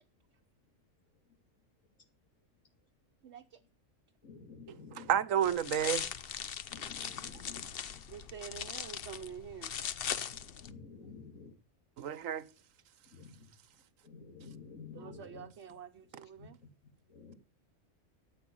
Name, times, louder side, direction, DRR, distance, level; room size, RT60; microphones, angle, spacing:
voice 1, 3.2-3.6 8.1-9.7 14.9-16.6, right 8 dB, 60° right, 1.1 m, -47 dB
voice 2, 4.2-5.2 6.7-8.1 10.3-11.5 13.1-13.5 14.0-15.5 16.4-17.3, left 4 dB, 90° left, 2.8 m, -51 dB
voice 3, 5.0-6.1 12.0-12.5, right 9 dB, 85° right, 1.2 m, -30 dB
sound 1, 5.4-10.7, left 8 dB, 55° left, 0.9 m, -40 dB
14.0 x 8.6 x 5.4 m
omnidirectional pair, 1.3 m